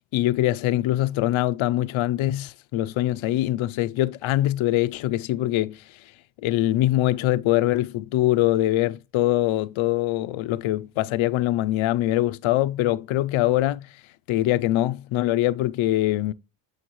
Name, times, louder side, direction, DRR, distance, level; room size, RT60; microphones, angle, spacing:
voice 1, 0.1-5.8 6.4-13.9 14.3-16.3, left 15 dB, 80° left, 0.6 m, -23 dB
9.2 x 6.6 x 3.0 m
cardioid pair, 95°, 47 cm